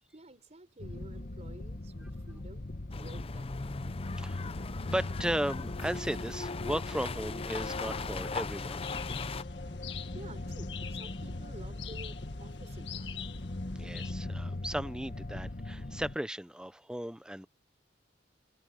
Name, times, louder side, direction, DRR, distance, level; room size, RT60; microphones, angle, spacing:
voice 1, 0.1-3.7 10.1-13.4, right 1 dB, 40° right, 4.2 m, -51 dB
sound 1, 0.8-16.2, left 2 dB, 50° left, 1.2 m, -40 dB
sound 2, 2.9-9.4, left 4 dB, 35° left, 0.6 m, -39 dB
voice 2, 4.9-8.8 13.7-17.5, right 1 dB, 5° right, 0.7 m, -36 dB
sound 3, 8.8-14.1, left 9 dB, 75° left, 1.8 m, -46 dB
head